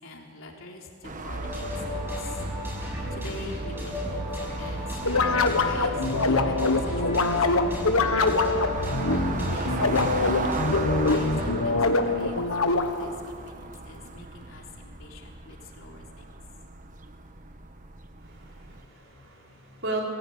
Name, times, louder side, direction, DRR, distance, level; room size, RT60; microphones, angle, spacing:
voice 1, 0.0-2.3 3.1-7.9 8.2-8.6 9.3-10.3 11.1-12.4 12.6-16.3, left 2 dB, 70° left, 0 dB, 3.6 m, -44 dB
sound 1, 1.0-18.8, right 3 dB, 40° right, 1.2 m, -38 dB
sound 2, 1.3-11.5, equal, 10° right, 6.2 m, -33 dB
sound 3, 5.0-13.2, left 3 dB, 90° left, 1.5 m, -24 dB
voice 2, 18.2-20.0, right 2 dB, 65° right, -2 dB, 5.6 m, -36 dB
22.0 x 16.0 x 8.7 m, 2.1 s
head